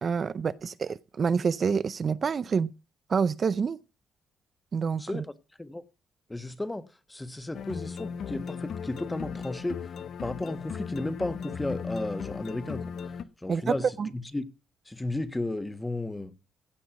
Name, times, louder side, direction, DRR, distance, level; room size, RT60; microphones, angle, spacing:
voice 1, 0.0-2.7 3.1-3.8 4.7-5.2 13.5-14.1, right 6 dB, 45° right, 0.6 m, -27 dB
voice 2, 5.0-5.3 5.6-5.8 6.3-6.8 7.1-13.1 13.4-14.5 14.9-16.3, left 2 dB, 15° left, 1.5 m, -34 dB
sound 1, 7.5-13.2, left 6 dB, 65° left, 1.0 m, -36 dB
16.0 x 6.1 x 5.9 m
cardioid pair, 90°, 0 cm